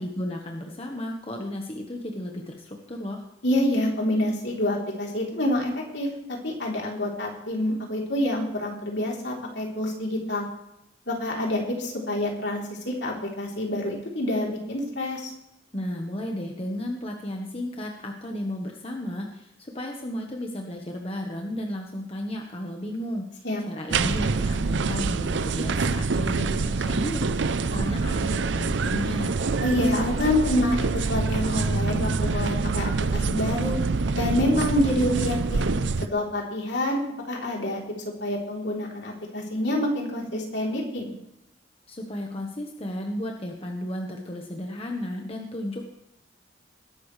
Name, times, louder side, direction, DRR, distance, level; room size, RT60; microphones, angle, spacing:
voice 1, 0.0-3.2 15.7-29.4 41.9-45.8, left 1 dB, 30° left, 1 dB, 1.2 m, -33 dB
voice 2, 3.4-10.5 11.1-15.3 23.4-23.6 29.6-33.7 34.1-35.7 36.1-37.8 38.2-41.1, left 1 dB, 70° left, -1 dB, 3.6 m, -27 dB
sound 1, 23.9-36.1, right 4 dB, 75° right, 0.6 m, -26 dB
20.5 x 11.5 x 3.3 m, 0.83 s
head